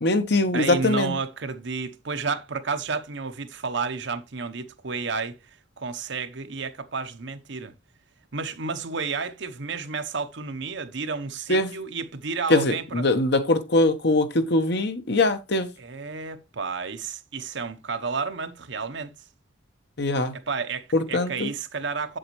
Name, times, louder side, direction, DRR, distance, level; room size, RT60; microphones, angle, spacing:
voice 1, 0.0-1.1 11.5-11.7 12.5-15.7 20.0-20.3 20.9-21.5, left 2 dB, 60° left, 1.1 m, -22 dB
voice 2, 0.5-7.7 8.3-13.0 15.8-19.1 20.3-22.2, right 4 dB, 65° right, 0.9 m, -31 dB
7.9 x 7.7 x 3.1 m
head